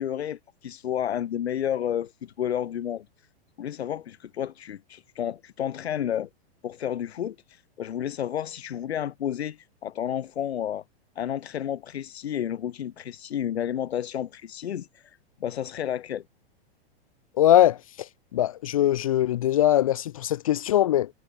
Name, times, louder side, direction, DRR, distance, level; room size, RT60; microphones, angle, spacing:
voice 1, 0.0-3.0 3.6-6.3 6.6-10.8 11.2-16.2, left 10 dB, 85° left, 4.3 m, -31 dB
voice 2, 17.4-17.8 18.3-21.1, left 12 dB, 35° left, 0.4 m, -21 dB
supercardioid pair, 175°, 31 cm